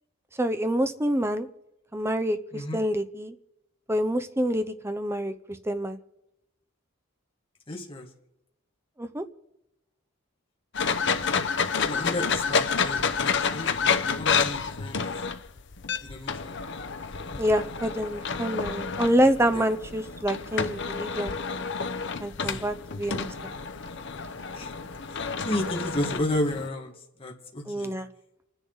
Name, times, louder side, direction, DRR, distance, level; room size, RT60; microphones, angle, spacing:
voice 1, 0.4-1.5 1.9-3.3 3.9-6.0 9.0-9.2 17.4-21.3 22.2-23.5 27.7-28.1, equal, 10° right, 9 dB, 0.7 m, -27 dB
voice 2, 2.5-2.8 7.7-8.1 11.8-15.0 16.0-16.6 19.5-19.7 22.4-22.7 24.5-24.7 25.1-26.9 27.2-27.9, left 1 dB, 25° left, -1 dB, 1.9 m, -32 dB
sound 1, 10.8-26.7, left 5 dB, 55° left, 0.8 m, -29 dB
28.5 x 10.0 x 4.0 m, 0.87 s
head